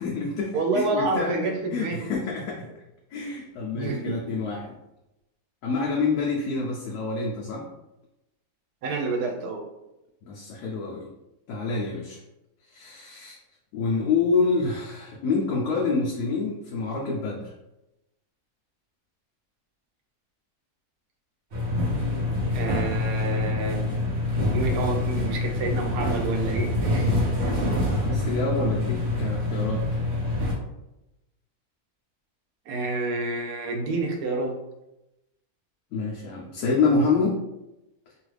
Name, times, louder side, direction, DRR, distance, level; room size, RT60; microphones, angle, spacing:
voice 1, 0.0-2.7 3.1-4.8 5.6-7.7 10.2-11.1 11.5-12.2 12.7-13.4 13.7-17.5 27.9-29.8 35.9-37.4, left 4 dB, 85° left, -3 dB, 1.1 m, -27 dB
voice 2, 0.5-2.1 3.7-4.2 8.8-9.6 22.5-23.9 24.5-27.1 32.7-34.6, right 3 dB, 90° right, 3 dB, 1.2 m, -28 dB
sound 1, 21.5-30.5, left 2 dB, 50° right, 0.8 m, -26 dB
3.1 x 2.4 x 3.2 m, 0.92 s
omnidirectional pair, 1.6 m